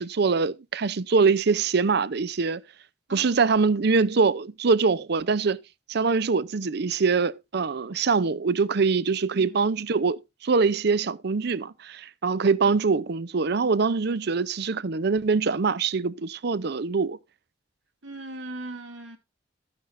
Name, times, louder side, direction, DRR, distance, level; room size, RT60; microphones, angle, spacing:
voice 1, 0.0-2.6 3.1-5.6 5.9-17.2, right 4 dB, 60° right, 0.6 m, -24 dB
voice 2, 3.1-3.5 9.3-9.7 18.0-19.2, right 2 dB, 85° right, 2.5 m, -39 dB
13.0 x 9.7 x 2.6 m
head